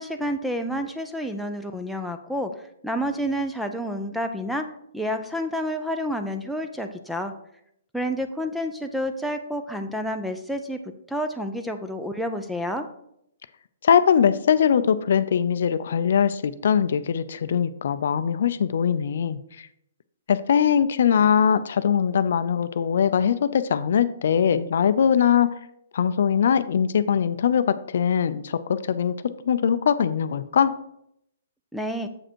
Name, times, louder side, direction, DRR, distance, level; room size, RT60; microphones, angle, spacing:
voice 1, 0.0-4.7 4.9-7.3 7.9-10.8 11.1-12.8 31.7-32.1, equal, ahead, 7 dB, 0.5 m, -29 dB
voice 2, 13.8-19.4 20.3-25.5 25.9-29.1 29.5-30.7, left 8 dB, 65° left, 13 dB, 0.5 m, -21 dB
7.5 x 5.1 x 4.5 m, 0.75 s
hypercardioid pair, 150°, 0 cm